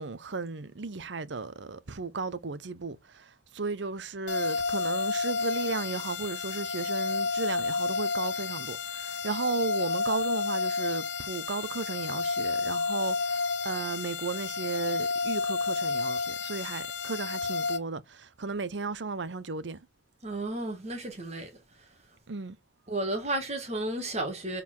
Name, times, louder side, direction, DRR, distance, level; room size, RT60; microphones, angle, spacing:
voice 1, 0.0-19.8 22.3-22.6, right 4 dB, 85° right, 0.8 m, -35 dB
sound 1, 4.3-17.8, left 4 dB, 80° left, 1.2 m, -31 dB
voice 2, 20.2-21.5 22.9-24.6, right 2 dB, 40° right, 1.8 m, -32 dB
7.3 x 4.2 x 5.9 m
head